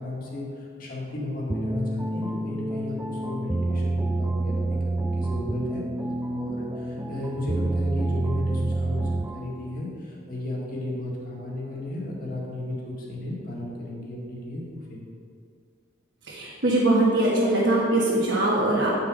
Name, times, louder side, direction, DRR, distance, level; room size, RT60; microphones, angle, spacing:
voice 1, 0.0-5.9 6.3-15.0, left 1 dB, 45° left, -4 dB, 1.9 m, -34 dB
sound 1, 1.5-9.6, right 2 dB, 10° right, 0.3 m, -28 dB
voice 2, 16.3-18.9, right 2 dB, 70° right, -7 dB, 1.5 m, -22 dB
8.8 x 5.7 x 5.1 m, 2.3 s
head